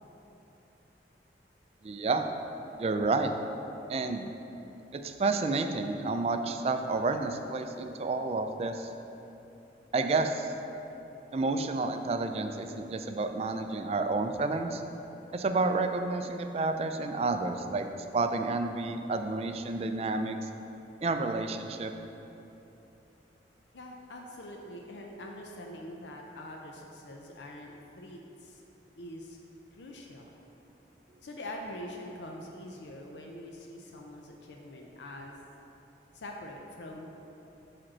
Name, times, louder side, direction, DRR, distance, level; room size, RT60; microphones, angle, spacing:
voice 1, 1.8-2.3 2.8-3.3 3.9-4.3 4.9-8.9 9.9-10.5 11.3-14.8 15.3-17.9 18.1-20.5 21.0-21.9, right 3 dB, 35° right, 7 dB, 0.3 m, -30 dB
voice 2, 23.7-28.6 29.0-29.4 29.7-30.4 31.2-35.4 36.1-37.1, left 1 dB, 80° left, 1 dB, 0.5 m, -44 dB
5.0 x 4.3 x 6.1 m, 3.0 s
head